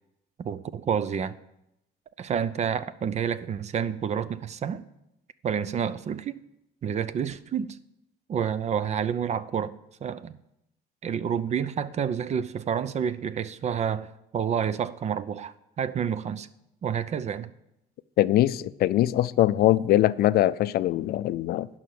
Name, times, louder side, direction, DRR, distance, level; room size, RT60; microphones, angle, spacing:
voice 1, 0.4-1.4 2.2-4.8 5.4-6.4 6.8-7.8 8.3-9.7 10.0-10.3 11.0-16.5 16.8-17.5, right 8 dB, 40° right, 0.6 m, -29 dB
voice 2, 18.2-21.7, left 14 dB, 65° left, 0.4 m, -22 dB
11.0 x 5.7 x 7.7 m
cardioid pair, 110°, 17 cm